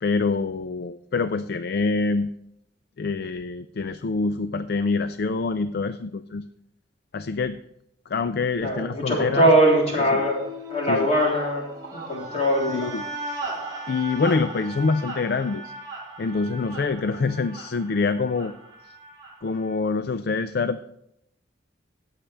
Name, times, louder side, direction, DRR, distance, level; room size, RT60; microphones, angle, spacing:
voice 1, 0.0-2.3 3.0-6.4 7.1-7.6 8.1-9.5 10.1-10.2 10.9-11.1 12.7-13.0 13.9-15.7 16.2-18.5 19.4-20.9, left 4 dB, 55° left, 12 dB, 0.4 m, -25 dB
voice 2, 8.6-10.4 10.7-12.9, right 1 dB, 35° left, -2 dB, 3.5 m, -21 dB
sound 1, 9.3-19.8, right 1 dB, 25° right, 2.8 m, -37 dB
18.5 x 7.4 x 3.4 m, 0.80 s
head